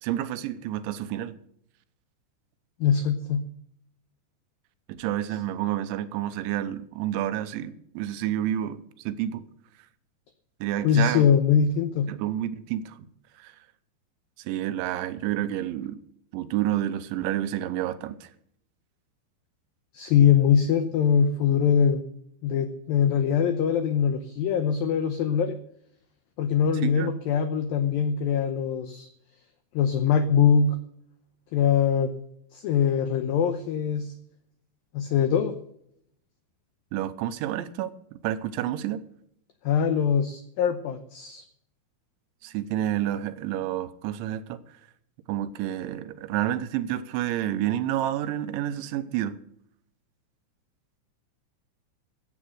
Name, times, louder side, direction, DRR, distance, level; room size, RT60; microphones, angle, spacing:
voice 1, 0.0-1.4 4.9-9.5 10.6-11.3 12.1-13.0 13.4-13.5 14.4-16.0 16.3-18.3 26.8-27.1 36.9-39.0 42.4-44.6 45.3-49.4, right 12 dB, 90° right, 3.2 m, -29 dB
voice 2, 2.8-3.4 10.8-12.1 19.9-22.1 22.4-25.6 26.4-29.1 29.7-30.8 31.5-32.1 32.5-34.1 34.9-35.5 39.7-41.4, left 7 dB, 90° left, 2.0 m, -22 dB
14.5 x 8.7 x 6.4 m
omnidirectional pair, 5.4 m